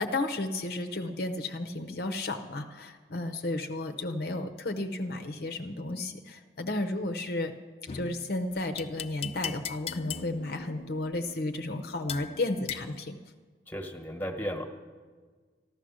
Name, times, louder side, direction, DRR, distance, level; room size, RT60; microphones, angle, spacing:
voice 1, 0.0-7.5 7.9-13.2, left 2 dB, 55° left, 7 dB, 0.7 m, -33 dB
sound 1, 7.9-13.0, left 7 dB, 35° left, 0.4 m, -40 dB
voice 2, 13.7-14.6, equal, 10° left, 4 dB, 1.3 m, -34 dB
14.0 x 12.5 x 6.3 m, 1.5 s
head